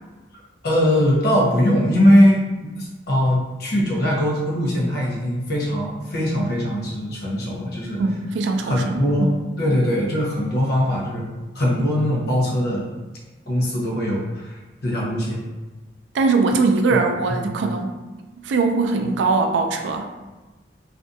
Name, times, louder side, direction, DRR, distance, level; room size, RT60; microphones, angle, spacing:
voice 1, 0.6-8.0 8.6-9.3 9.6-11.3 11.5-12.9 13.5-15.4 17.3-17.5, equal, 60° left, -3 dB, 0.7 m, -21 dB
voice 2, 8.0-9.3 16.1-17.9 18.4-20.1, right 3 dB, 80° right, 5 dB, 0.3 m, -21 dB
2.5 x 2.2 x 2.6 m, 1.2 s
head